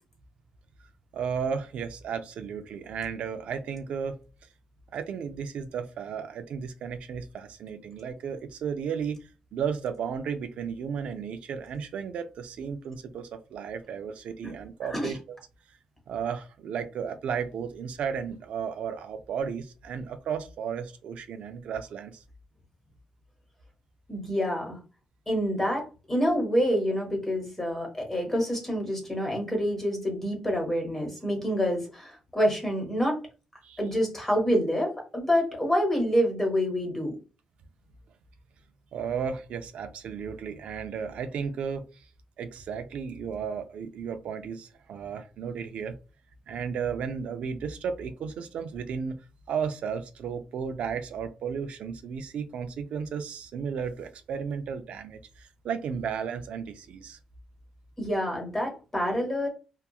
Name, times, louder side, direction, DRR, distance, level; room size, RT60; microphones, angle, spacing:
voice 1, 1.1-4.5 4.9-15.4 15.7-15.8 16.1-22.2 33.6-33.8 38.9-42.1 42.4-46.0 46.5-49.2 49.5-57.2, right 6 dB, 75° right, 0.3 m, -34 dB
voice 2, 24.1-24.8 25.3-33.2 33.8-37.2 58.0-59.5, equal, 15° left, 1.0 m, -27 dB
2.8 x 2.3 x 2.3 m
cardioid pair, 135°, 2 cm